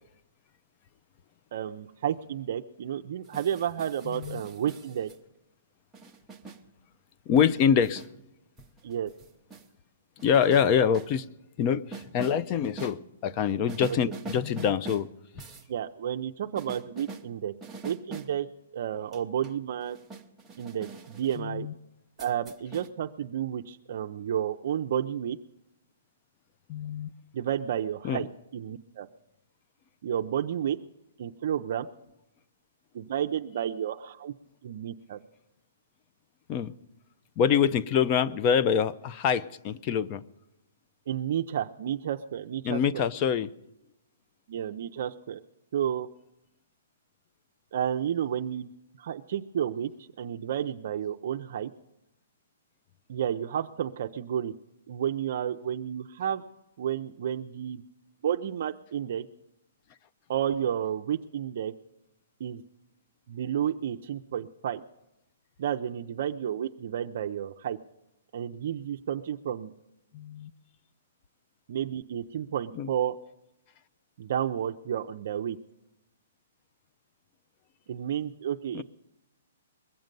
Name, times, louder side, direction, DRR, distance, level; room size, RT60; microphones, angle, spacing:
voice 1, 1.5-5.1 8.8-9.1 15.7-17.5 17.8-18.5 18.7-20.0 20.6-21.7 22.2-25.4 27.3-28.3 28.5-29.1 30.0-30.8 31.2-31.9 32.9-34.3 34.6-35.2 41.1-43.0 44.5-45.4 45.7-46.1 47.7-48.7 49.0-51.7 53.1-54.5 54.9-56.4 56.8-57.8 58.2-59.3 60.3-61.7 62.4-62.6 63.3-64.8 65.6-67.8 68.3-69.7 71.7-73.2 74.2-75.6 77.9-78.8, right 9 dB, 50° right, 5 dB, 0.5 m, -31 dB
sound 1, 3.2-5.2 5.9-6.6 7.3-8.1 8.6-9.7 10.2-11.1 11.9-12.4 12.8-13.0 13.7-15.1 15.4-15.7 16.5-17.3 17.6-18.3 18.8-21.4 22.2-22.9, right 4 dB, 5° right, 0.7 m, -44 dB
voice 2, 4.1-4.4 7.3-8.0 10.2-11.3 11.6-15.1 21.4-21.7 26.7-27.1 28.0-28.2 36.5-36.7 37.4-40.2 42.6-43.5 70.1-70.5 72.7-72.9 78.7-78.8, left 7 dB, 25° left, 14 dB, 0.4 m, -25 dB
21.5 x 7.7 x 5.3 m, 0.91 s
hypercardioid pair, 165°, 0 cm